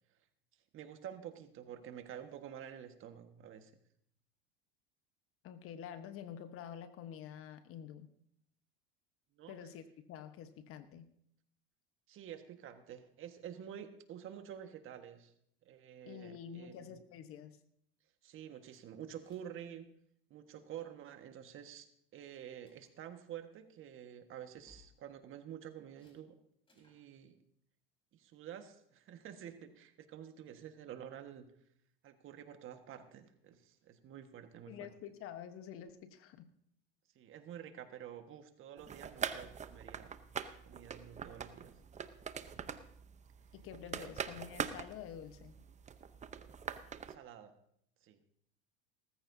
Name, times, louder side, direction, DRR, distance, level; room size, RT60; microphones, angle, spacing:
voice 1, 0.7-3.7 9.4-9.5 12.1-15.3 15.6-17.0 18.2-19.8 20.3-21.9 22.1-26.3 26.7-27.4 28.1-31.5 32.0-34.7 37.1-40.2 40.6-41.7 44.0-44.1 47.1-47.6 48.0-48.2, right 9 dB, 45° right, 7 dB, 1.6 m, -49 dB
voice 2, 5.4-8.1 9.5-11.1 16.0-17.6 34.7-36.5 43.5-45.7, left 9 dB, 50° left, 10 dB, 1.2 m, -48 dB
sound 1, 18.7-19.6 19.8-20.1 20.4-20.9 21.4-21.8 22.2-22.9 24.5-24.9 25.9-26.2 26.7-27.0, left 2 dB, 20° left, 5.2 m, -68 dB
sound 2, 38.8-47.1, right 7 dB, 25° right, 0.8 m, -43 dB
18.5 x 14.5 x 2.8 m, 0.69 s
supercardioid pair, 100°, 29 cm